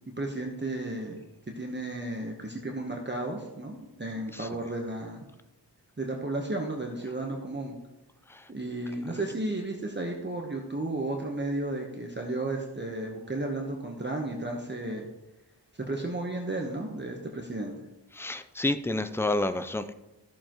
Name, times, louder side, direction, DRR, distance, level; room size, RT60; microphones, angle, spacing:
voice 1, 0.1-1.2 1.6-5.2 6.0-7.8 8.5-15.1 15.9-17.8, right 2 dB, 25° right, 1 dB, 1.0 m, -33 dB
voice 2, 18.1-19.9, left 2 dB, 5° left, 11 dB, 0.4 m, -29 dB
14.0 x 6.8 x 3.0 m, 0.98 s
wide cardioid pair, 75°, 41 cm